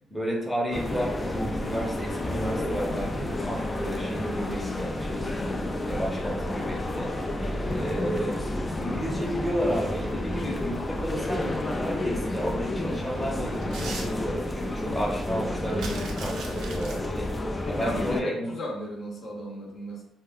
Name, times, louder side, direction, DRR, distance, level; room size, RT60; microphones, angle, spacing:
voice 1, 0.1-7.1 7.7-8.4 8.8-17.3 17.7-18.5, equal, 5° left, -3 dB, 0.7 m, -32 dB
sound 1, 0.7-18.2, left 1 dB, 20° left, 0.3 m, -30 dB
sound 2, 7.0-8.0 9.7-10.4 10.9-11.0 12.3-12.4 12.7-14.6 15.0-15.1 15.3-17.0, right 3 dB, 75° right, 0.5 m, -41 dB
voice 2, 17.6-20.0, left 1 dB, 55° left, -2 dB, 0.7 m, -36 dB
2.3 x 2.1 x 3.5 m, 0.79 s
cardioid pair, 90°, 0 cm